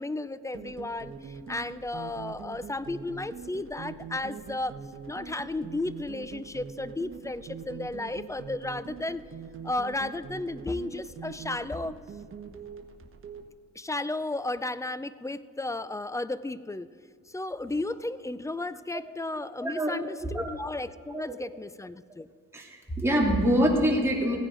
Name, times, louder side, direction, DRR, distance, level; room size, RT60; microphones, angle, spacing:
voice 1, 0.0-4.7 5.1-9.2 9.6-12.0 13.8-16.9 17.3-22.3, left 2 dB, 10° left, 15 dB, 0.4 m, -34 dB
sound 1, 0.5-13.5, right 6 dB, 45° right, 1.2 m, -43 dB
voice 2, 19.6-20.5 22.5-24.4, equal, 10° right, -2 dB, 2.5 m, -25 dB
16.0 x 9.7 x 3.9 m, 2.1 s
cardioid pair, 90°, 30 cm